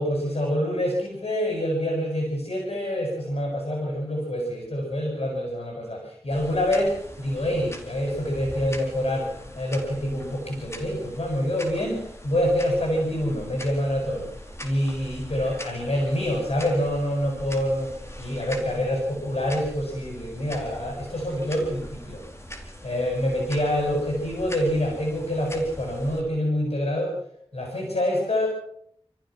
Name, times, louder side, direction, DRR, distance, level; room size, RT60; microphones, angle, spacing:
voice 1, 0.0-14.3 14.6-17.9 18.2-22.2 22.8-27.1 27.5-28.5, equal, 80° left, 0 dB, 7.2 m, -26 dB
sound 1, 6.3-26.2, equal, 25° left, 4.3 m, -42 dB
29.5 x 15.0 x 6.0 m, 0.67 s
wide cardioid pair, 45°, 10 cm